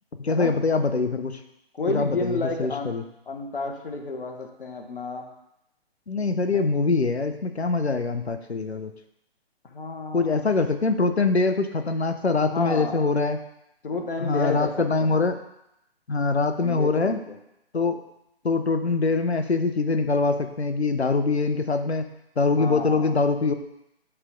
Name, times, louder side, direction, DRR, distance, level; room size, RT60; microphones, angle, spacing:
voice 1, 0.2-1.4 1.9-3.0 6.1-8.9 10.1-13.4 14.2-15.4 16.1-17.2 17.7-18.0 18.4-22.1 22.4-23.5, left 3 dB, 90° left, 8 dB, 0.7 m, -23 dB
voice 2, 1.7-2.9 3.3-5.3 6.5-6.6 9.7-10.5 12.5-13.1 13.8-15.3 16.6-17.4 22.6-23.2, left 3 dB, 60° left, 3 dB, 1.0 m, -31 dB
5.7 x 3.4 x 5.2 m, 0.84 s
figure-of-eight pair, 140°, 31 cm